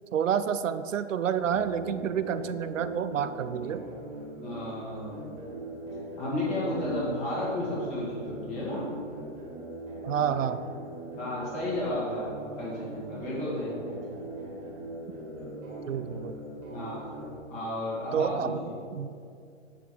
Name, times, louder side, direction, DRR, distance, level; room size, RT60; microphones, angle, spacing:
voice 1, 0.1-3.8 10.0-10.6 15.9-16.4 18.1-19.1, right 8 dB, 85° right, 12 dB, 0.6 m, -29 dB
sound 1, 1.4-17.4, right 1 dB, 15° right, 2.0 m, -41 dB
voice 2, 4.4-5.3 6.2-8.8 11.2-12.3 12.6-14.0 16.7-17.0 17.5-18.5, left 1 dB, 20° left, -6 dB, 2.2 m, -32 dB
7.9 x 6.7 x 5.1 m, 2.3 s
hypercardioid pair, 165°, 37 cm